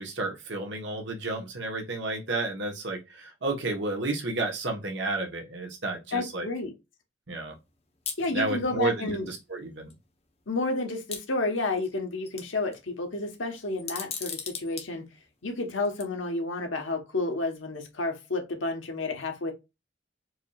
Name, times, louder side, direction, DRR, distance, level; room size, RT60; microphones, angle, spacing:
voice 1, 0.0-6.5 7.3-7.6 8.3-9.9, right 2 dB, 70° right, 1.2 m, -31 dB
voice 2, 6.1-6.7 8.2-9.3 10.5-15.1 15.4-19.5, left 2 dB, 90° left, 1.1 m, -31 dB
sound 1, 8.1-8.3 9.4-9.5 9.9-10.0 11.1-11.9 12.3-12.8 13.8-14.9 15.8-16.0, left 7 dB, 30° left, 0.7 m, -36 dB
4.7 x 2.8 x 2.3 m
head